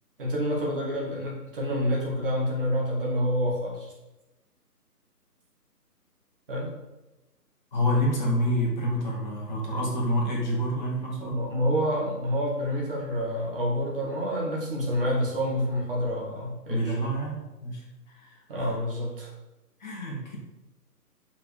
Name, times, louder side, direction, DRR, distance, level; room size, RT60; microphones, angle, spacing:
voice 1, 0.2-3.9 6.5-6.7 11.2-17.0 18.5-19.3, equal, 35° right, -3 dB, 2.3 m, -28 dB
voice 2, 7.7-11.4 16.7-18.4 19.8-20.4, equal, 30° left, -2 dB, 1.7 m, -28 dB
5.9 x 4.7 x 6.5 m, 1.0 s
figure-of-eight pair, 145°, 48 cm